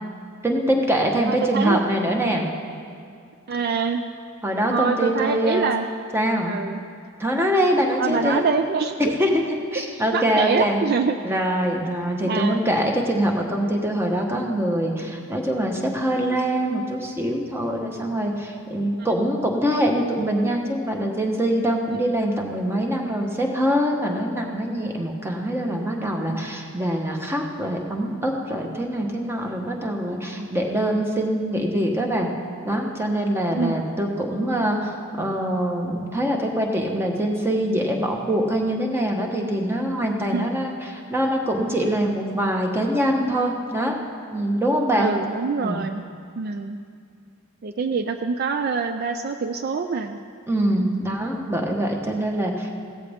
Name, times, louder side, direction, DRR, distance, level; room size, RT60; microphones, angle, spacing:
voice 1, 0.4-2.5 4.4-5.7 6.1-6.6 7.2-8.4 9.0-10.8 11.2-32.3 32.6-43.9 44.3-45.1 45.6-45.9 50.5-52.7, equal, 10° right, 1 dB, 1.1 m, -24 dB
voice 2, 1.3-1.8 3.5-4.0 4.7-5.9 6.5-6.8 8.0-9.1 10.1-11.2 12.2-12.6 19.0-19.1 26.3-26.5 30.4-30.5 33.5-33.8 40.3-40.5 44.9-46.0 46.4-46.8 47.6-50.2 50.8-51.1, right 5 dB, 45° right, 7 dB, 0.4 m, -25 dB
16.5 x 13.5 x 3.6 m, 2.4 s
head